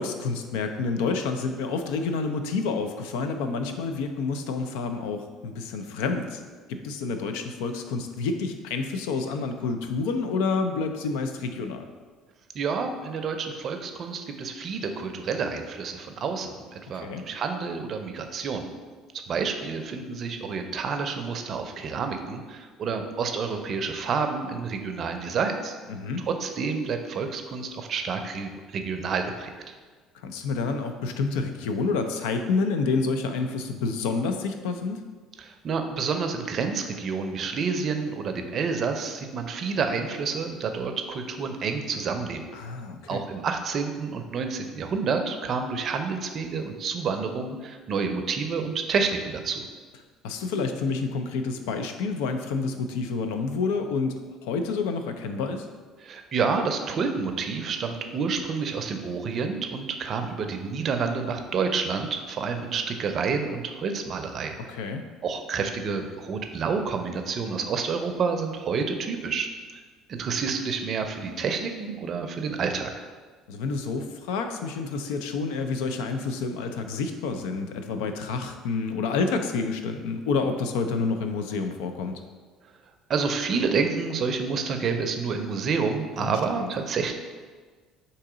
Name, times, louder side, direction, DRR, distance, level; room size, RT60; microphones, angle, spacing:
voice 1, 0.0-6.4 6.7-11.8 16.9-17.3 25.9-26.2 30.1-35.0 42.5-43.3 50.2-54.1 54.4-55.7 64.7-65.1 73.5-82.2 86.2-86.7, left 4 dB, 90° left, 6 dB, 0.4 m, -29 dB
voice 2, 12.5-18.7 19.3-25.8 26.3-29.8 35.4-42.4 43.1-49.6 56.0-64.6 65.2-69.8 70.1-72.9 83.1-87.1, right 5 dB, 45° right, 6 dB, 0.5 m, -29 dB
3.7 x 2.8 x 4.8 m, 1.5 s
supercardioid pair, 100°, 0 cm